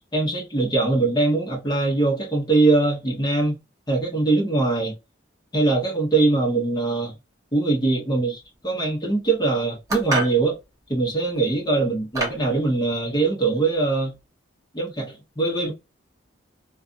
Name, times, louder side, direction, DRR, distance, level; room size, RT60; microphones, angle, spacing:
voice 1, 0.1-3.6 3.9-4.9 5.5-7.1 7.5-10.6 10.9-14.1 14.7-15.7, right 3 dB, 20° left, 0.9 m, -22 dB
sound 1, 9.9-10.4 11.4-11.5 12.1-12.5, right 2 dB, 15° right, 0.9 m, -27 dB
2.5 x 2.3 x 2.5 m
head